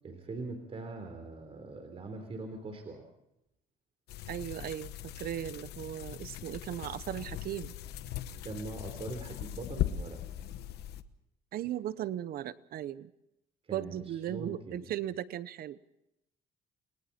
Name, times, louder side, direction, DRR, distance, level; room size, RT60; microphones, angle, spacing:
voice 1, 0.0-3.0 8.4-10.2 13.7-14.9, right 3 dB, 35° right, 5 dB, 3.8 m, -42 dB
sound 1, 4.1-11.0, left 12 dB, 75° left, 1.1 m, -39 dB
voice 2, 4.3-7.7 11.5-13.1 13.7-15.9, right 11 dB, 65° right, 15 dB, 0.9 m, -37 dB
30.0 x 21.0 x 4.3 m, 0.84 s
cardioid pair, 110°, 17 cm